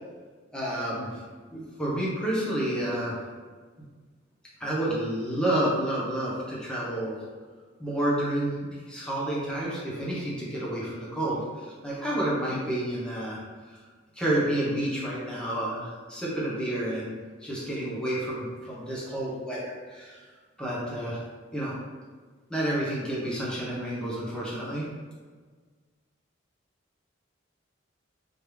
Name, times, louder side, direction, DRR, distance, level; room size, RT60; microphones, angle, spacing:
voice 1, 0.5-1.1 1.5-3.1 4.6-7.2 7.8-13.4 14.2-17.1 17.4-20.2 20.6-21.2 21.5-21.7 22.5-24.9, right 1 dB, 5° left, -7 dB, 1.0 m, -30 dB
4.1 x 3.3 x 3.3 m, 1.5 s
head